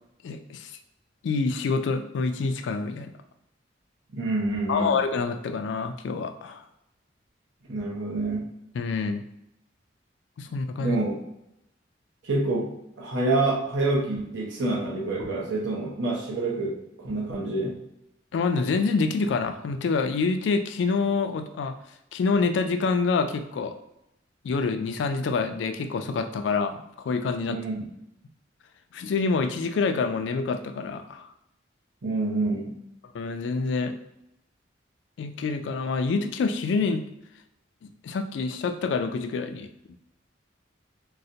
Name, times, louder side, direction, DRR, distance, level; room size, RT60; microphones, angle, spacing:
voice 1, 0.2-0.7 1.2-3.1 4.7-6.6 8.7-9.2 10.4-11.0 18.3-21.7 22.1-23.8 24.4-27.6 28.9-31.3 33.1-33.9 35.2-37.0 37.8-39.7, left 4 dB, 75° left, 8 dB, 0.3 m, -27 dB
voice 2, 4.1-5.0 7.7-8.5 10.8-11.2 12.2-17.8 27.5-27.8 32.0-32.8, right 2 dB, 85° right, -2 dB, 0.8 m, -27 dB
3.9 x 2.1 x 2.7 m, 0.83 s
head